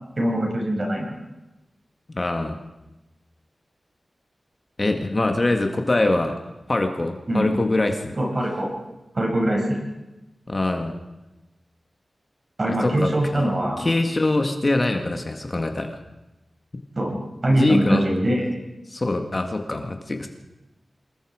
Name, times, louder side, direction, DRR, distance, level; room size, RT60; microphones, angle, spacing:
voice 1, 0.2-1.1 7.3-7.5 8.2-8.7 9.1-9.8 12.6-13.8 17.0-17.2 17.4-18.4, right 1 dB, 40° right, -1 dB, 7.1 m, -22 dB
voice 2, 2.1-2.5 4.8-6.4 6.7-8.1 10.5-11.0 12.7-13.4 13.8-15.9 17.5-18.0 18.9-20.3, left 2 dB, 35° left, 4 dB, 1.9 m, -23 dB
26.5 x 20.5 x 5.0 m, 1.0 s
wide cardioid pair, 85°, 0 cm